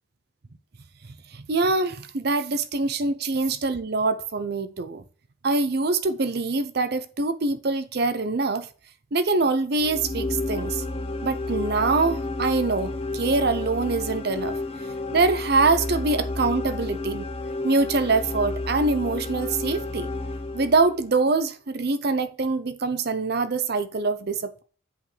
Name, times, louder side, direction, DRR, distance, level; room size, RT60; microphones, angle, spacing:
voice 1, 1.3-5.0 5.4-8.7 9.1-10.8 11.2-14.6 15.1-17.3 17.6-20.1 20.5-24.6, right 3 dB, 50° right, 0.6 m, -24 dB
sound 1, 9.8-21.1, left 2 dB, 30° left, 0.6 m, -31 dB
8.3 x 5.2 x 3.3 m
head